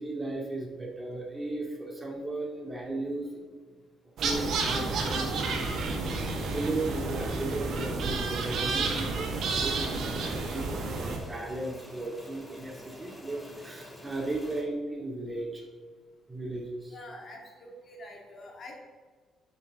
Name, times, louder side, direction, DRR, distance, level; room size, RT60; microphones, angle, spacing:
voice 1, 0.0-3.4 4.2-15.6 16.3-16.9, right 2 dB, 25° right, -1 dB, 2.5 m, -36 dB
sound 1, 4.2-11.2, right 3 dB, 70° right, 1.7 m, -31 dB
sound 2, 9.3-14.6, left 1 dB, 10° left, 2.7 m, -47 dB
voice 2, 16.9-18.8, left 1 dB, 50° left, 0 dB, 2.2 m, -46 dB
11.0 x 6.1 x 3.7 m, 1.5 s
cardioid pair, 90°, 0 cm